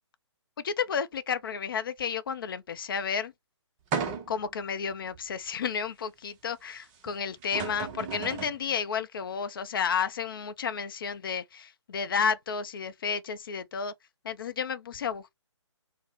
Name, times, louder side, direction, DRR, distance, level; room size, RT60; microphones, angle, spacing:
voice 1, 0.6-3.3 4.3-13.9 14.2-15.3, left 6 dB, 45° left, 0.5 m, -32 dB
sound 1, 3.9-4.5 5.1-5.2 7.1-7.2 7.4-8.6, right 5 dB, 20° right, 0.6 m, -34 dB
4.1 x 2.1 x 3.3 m
figure-of-eight pair, 135°, 16 cm